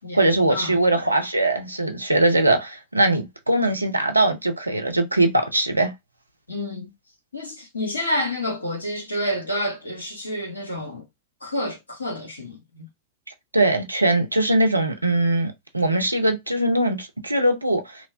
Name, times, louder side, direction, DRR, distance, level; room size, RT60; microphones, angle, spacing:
voice 1, 0.1-5.9 13.5-18.1, right 1 dB, 85° right, 0.5 m, -21 dB
voice 2, 6.5-6.9 7.3-11.1 11.4-12.9, left 1 dB, 80° left, 0.8 m, -29 dB
3.0 x 2.1 x 2.5 m
figure-of-eight pair, 90°, 0 cm